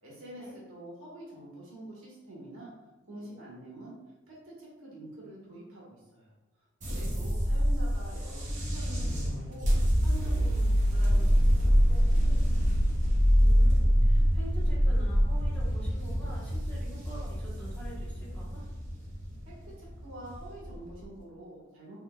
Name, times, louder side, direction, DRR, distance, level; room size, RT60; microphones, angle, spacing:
voice 1, 0.0-2.7 3.0-3.9 4.3-6.3 6.8-12.6 19.5-22.0, right 1 dB, 75° right, -6 dB, 1.5 m, -47 dB
sound 1, 6.8-21.0, equal, 35° right, 0.9 m, -25 dB
voice 2, 13.4-18.6, right 1 dB, 10° left, -8 dB, 1.2 m, -47 dB
3.9 x 3.6 x 2.3 m, 1.0 s
head